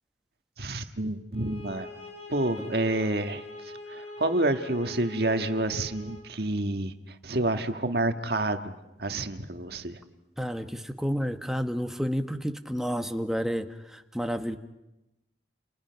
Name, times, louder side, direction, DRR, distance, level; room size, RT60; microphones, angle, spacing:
voice 1, 0.6-1.9 2.3-6.9 7.2-10.0, right 2 dB, 60° right, 7 dB, 1.6 m, -29 dB
sound 1, 1.3-6.3, left 2 dB, 40° left, 4.1 m, -43 dB
voice 2, 10.4-14.6, equal, ahead, 6 dB, 1.2 m, -30 dB
30.0 x 29.5 x 5.8 m, 0.96 s
head